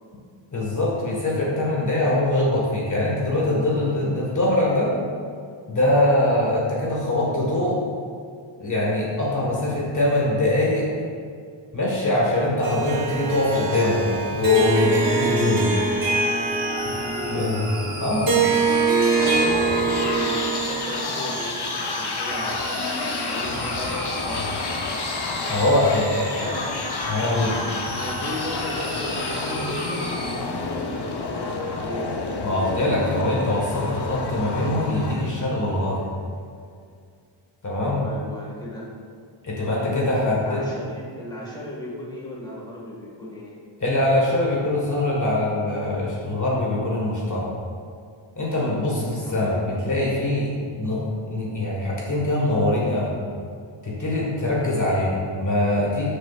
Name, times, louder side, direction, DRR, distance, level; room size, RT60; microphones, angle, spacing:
voice 1, 0.5-4.9 5.7-7.8 8.6-10.9 11.7-15.7 17.3-17.6 18.0-18.4 25.5-26.6 27.0-27.5 32.4-36.0 37.6-38.0 39.4-40.6 43.8-47.5 48.3-50.5 50.8-51.0 51.3-53.1 53.8-56.1, left 1 dB, 40° left, -4 dB, 1.6 m, -23 dB
Harp, 12.6-21.1, right 4 dB, 45° right, 1.2 m, -24 dB
sound 1, 14.9-30.3, right 1 dB, 15° right, 1.7 m, -34 dB
voice 2, 16.9-17.9 19.0-22.7 23.3-24.5 26.4-27.0 27.9-32.2 32.7-33.1 38.0-38.9 39.7-43.6 48.8-49.6, left 1 dB, 10° left, -5 dB, 1.8 m, -35 dB
sound 2, 19.2-35.9, left 3 dB, 55° left, 0.9 m, -30 dB
13.0 x 6.8 x 2.4 m, 2.2 s
wide cardioid pair, 150°, 48 cm